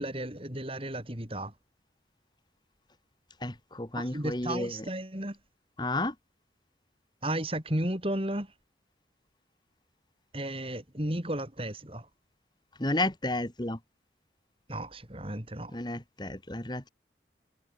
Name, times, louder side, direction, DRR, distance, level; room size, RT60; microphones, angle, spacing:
voice 1, 0.0-1.5 4.0-5.4 7.2-8.5 10.3-12.1 14.7-15.7, right 1 dB, 30° right, 5.3 m, -34 dB
voice 2, 3.4-4.7 5.8-6.1 12.8-13.8 15.7-16.9, left 2 dB, 25° left, 2.3 m, -32 dB
head